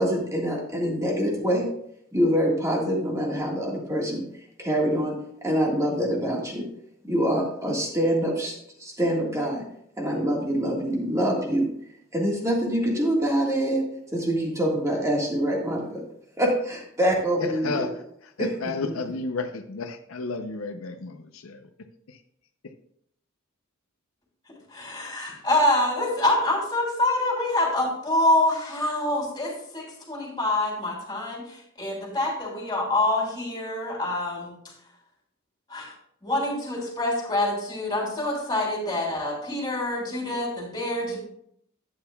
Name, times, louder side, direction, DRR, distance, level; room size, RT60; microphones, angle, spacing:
voice 1, 0.0-1.7 2.1-4.2 4.6-5.1 5.4-6.7 7.0-8.5 8.8-9.6 10.0-11.7 12.1-13.8 14.1-16.0 16.4-17.9 18.4-18.5, equal, 15° right, 1.6 m, -25 dB
voice 2, 17.4-17.9 18.2-21.7 22.1-22.2, left 3 dB, 80° left, 0.6 m, -32 dB
voice 3, 24.7-34.6 35.7-35.9 36.2-41.2, left 1 dB, 20° left, 3.0 m, -26 dB
11.5 x 8.9 x 2.3 m
head